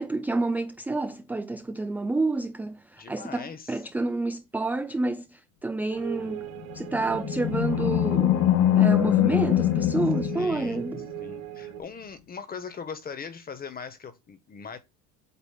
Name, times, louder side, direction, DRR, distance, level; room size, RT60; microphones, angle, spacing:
voice 1, 0.0-6.5 6.7-8.4 8.8-11.1, right 2 dB, 5° right, 0.4 m, -29 dB
voice 2, 3.0-3.8 10.3-10.8 11.2-14.8, left 6 dB, 25° left, 1.4 m, -40 dB
sound 1, 5.9-11.8, right 15 dB, 70° right, 1.3 m, -40 dB
Animal, 6.6-11.2, left 12 dB, 45° left, 0.8 m, -23 dB
8.3 x 2.9 x 5.8 m
supercardioid pair, 120°, 35 cm